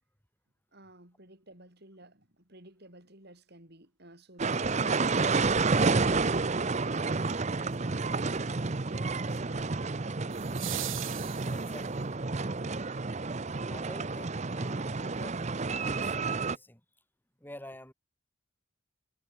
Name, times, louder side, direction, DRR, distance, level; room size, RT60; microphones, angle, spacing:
voice 1, 0.7-9.6, right 1 dB, 50° right, 6.6 m, -53 dB
sound 1, 4.4-16.6, right 3 dB, 35° right, 0.7 m, -30 dB
sound 2, 4.7-4.8 10.3-12.1 14.3-14.4, right 15 dB, 65° right, 4.0 m, -40 dB
voice 2, 11.5-12.0 13.7-15.4 15.8-16.8 17.4-17.9, left 1 dB, 10° left, 5.9 m, -48 dB
head